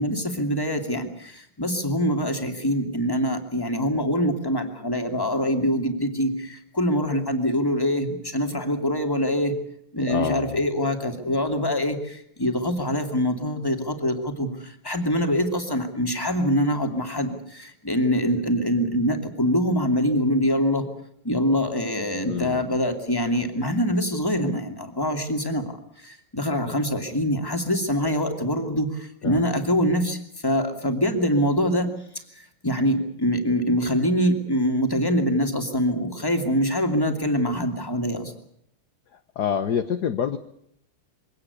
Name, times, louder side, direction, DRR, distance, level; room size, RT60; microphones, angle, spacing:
voice 1, 0.0-9.5 9.9-20.8 21.2-25.7 26.0-31.9 32.6-38.3, equal, 10° left, 5 dB, 2.5 m, -24 dB
voice 2, 10.1-10.6 22.3-22.6 29.2-29.5 39.4-40.4, left 8 dB, 55° left, 10 dB, 1.4 m, -27 dB
23.5 x 18.0 x 8.4 m, 0.73 s
omnidirectional pair, 2.4 m